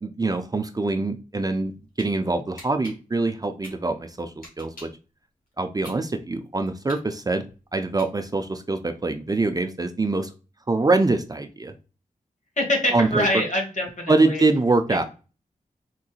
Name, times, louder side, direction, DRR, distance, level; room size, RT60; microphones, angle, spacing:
voice 1, 0.0-1.7 2.0-4.9 5.6-7.4 7.7-10.3 10.7-11.7 12.9-13.3 14.1-15.0, right 3 dB, 25° right, 7 dB, 0.4 m, -24 dB
sound 1, 1.7-2.1 2.6-5.0 5.5-8.5, left 1 dB, 75° left, 1.6 m, -46 dB
voice 2, 12.6-14.4, left 1 dB, 55° left, 0 dB, 1.6 m, -24 dB
3.7 x 2.5 x 2.4 m, 0.33 s
cardioid pair, 50°, 15 cm